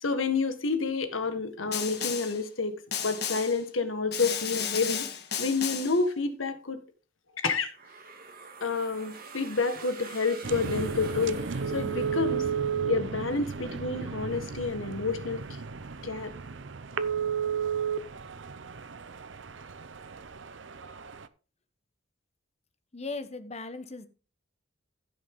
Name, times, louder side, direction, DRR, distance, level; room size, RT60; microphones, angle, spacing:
voice 1, 0.0-5.1 5.4-6.8 7.4-7.7 8.6-11.4 11.7-12.5 12.8-15.4 16.0-16.3, left 4 dB, 85° left, 1.6 m, -29 dB
Snare drum, 1.7-2.4 2.9-3.6 4.1-6.0, left 8 dB, 55° left, 1.7 m, -33 dB
sound 1, 7.7-12.6, right 4 dB, 45° right, 2.2 m, -46 dB
sound 2, 10.4-21.3, right 6 dB, 70° right, 0.7 m, -33 dB
voice 2, 22.9-24.1, left 3 dB, 30° left, 1.0 m, -37 dB
15.5 x 6.4 x 3.7 m
head